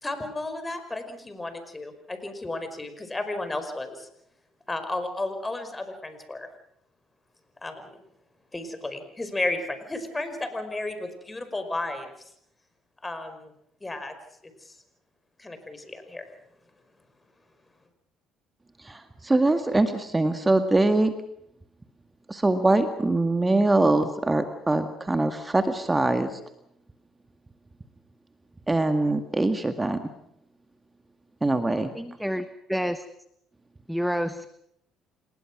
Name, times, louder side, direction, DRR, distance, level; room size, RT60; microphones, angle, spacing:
voice 1, 0.0-4.1 4.7-6.5 7.6-8.0 8.5-12.1 13.0-13.5 13.8-14.1 14.4-14.7 15.4-16.3, left 2 dB, 20° left, 9 dB, 5.2 m, -33 dB
voice 2, 18.8-21.1 22.3-26.4 28.7-30.0 31.4-31.9, right 2 dB, 20° right, 8 dB, 1.9 m, -23 dB
voice 3, 32.0-33.0 33.9-34.5, equal, ahead, 12 dB, 1.2 m, -29 dB
28.0 x 20.0 x 6.2 m, 0.73 s
hypercardioid pair, 65°, 0 cm